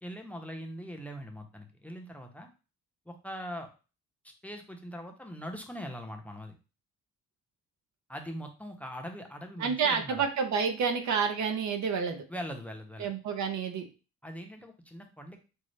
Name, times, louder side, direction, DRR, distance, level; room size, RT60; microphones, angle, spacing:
voice 1, 0.0-2.5 3.1-3.7 4.4-6.5 8.1-10.3 12.3-13.1 14.2-15.4, equal, 5° left, 4 dB, 0.7 m, -41 dB
voice 2, 9.6-12.2 13.0-13.9, right 6 dB, 65° right, 5 dB, 0.8 m, -29 dB
5.2 x 2.0 x 3.2 m, 0.32 s
cardioid pair, 90°, 30 cm